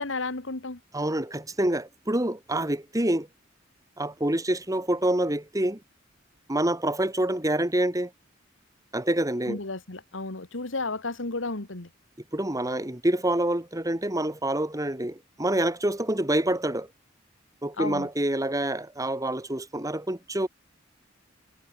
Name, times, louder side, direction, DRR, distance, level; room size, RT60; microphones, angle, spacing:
voice 1, 0.0-0.8 9.5-11.9 17.8-18.1, left 3 dB, 80° left, 2.0 m, -32 dB
voice 2, 0.9-3.3 4.0-5.8 6.5-8.1 8.9-9.6 12.3-16.9 17.6-20.5, right 1 dB, 20° right, 2.8 m, -27 dB
head